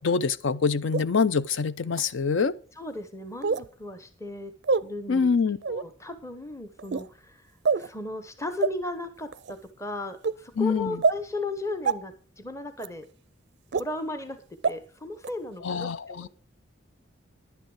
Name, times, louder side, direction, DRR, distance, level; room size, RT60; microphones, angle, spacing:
voice 1, 0.0-2.6 5.1-5.6 10.6-11.0 15.6-16.3, left 5 dB, 70° left, 0.6 m, -25 dB
sound 1, 0.9-1.0 1.9-2.0 3.4-3.7 4.6-4.8 5.6-5.8 6.8-7.1 7.6-7.9 8.6-8.7 9.3-9.5 10.2-10.3 11.0-11.2 11.8-11.9 12.8-12.9 13.7-13.8 14.6-14.7 15.2-15.3, right 5 dB, 55° right, 0.4 m, -25 dB
voice 2, 2.8-4.5 4.8-5.3 5.7-13.1 13.7-16.3, left 2 dB, 15° left, 0.8 m, -36 dB
10.5 x 9.1 x 4.8 m
head